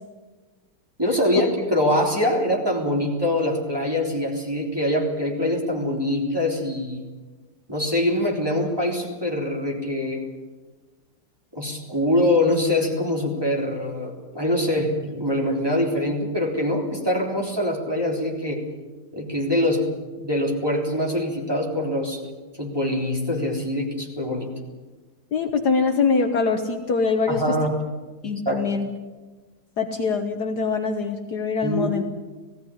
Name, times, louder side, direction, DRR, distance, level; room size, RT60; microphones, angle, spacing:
voice 1, 1.0-7.0 7.7-10.2 11.5-18.6 19.1-19.9 20.2-22.2 22.6-24.5 27.3-27.8 28.5-28.7 31.6-31.9, left 1 dB, 10° right, -1 dB, 3.7 m, -24 dB
voice 2, 25.3-27.6 28.2-28.9 29.8-32.0, left 4 dB, 55° left, 5 dB, 1.6 m, -23 dB
18.5 x 16.0 x 9.9 m, 1.3 s
omnidirectional pair, 2.2 m